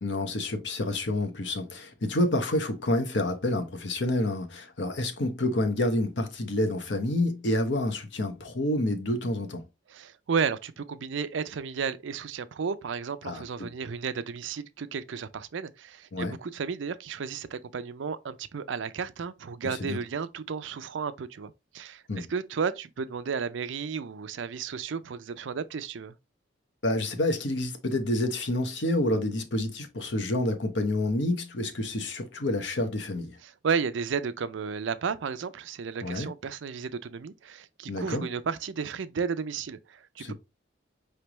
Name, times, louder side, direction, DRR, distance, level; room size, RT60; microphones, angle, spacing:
voice 1, 0.0-9.6 13.2-13.7 16.1-16.3 19.6-20.0 22.1-22.3 26.8-33.4 36.0-36.3 37.9-38.2 40.2-40.3, left 1 dB, 65° left, 0.9 m, -28 dB
voice 2, 9.9-26.1 33.4-40.3, right 6 dB, 75° right, 0.4 m, -33 dB
5.0 x 3.3 x 3.0 m
head